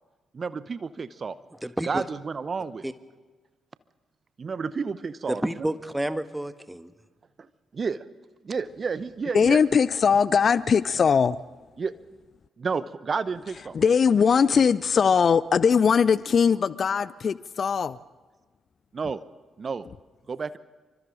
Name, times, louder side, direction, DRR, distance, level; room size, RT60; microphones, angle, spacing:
voice 1, 0.3-1.4 1.8-2.8 4.4-5.7 7.7-8.0 8.4-9.6 11.8-11.9 12.6-13.8 18.9-19.2 19.6-19.9 20.3-20.6, right 5 dB, 45° right, 0.9 m, -31 dB
voice 2, 1.6-2.0 2.8-2.9 5.3-6.9, right 1 dB, 10° right, 1.5 m, -30 dB
voice 3, 9.3-11.4 13.7-18.0, left 6 dB, 50° left, 0.6 m, -20 dB
27.5 x 24.5 x 3.9 m
figure-of-eight pair, 40°, 0 cm